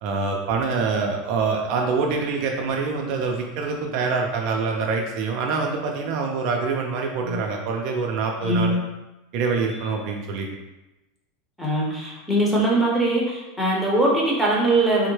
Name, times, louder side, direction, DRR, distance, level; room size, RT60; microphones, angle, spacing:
voice 1, 0.0-8.8 9.3-10.5, right 4 dB, 55° right, 1 dB, 0.4 m, -25 dB
voice 2, 8.4-8.8 9.7-9.9 11.6-15.1, right 1 dB, ahead, -5 dB, 0.9 m, -22 dB
3.5 x 2.1 x 3.1 m, 1.0 s
supercardioid pair, 120°, 0 cm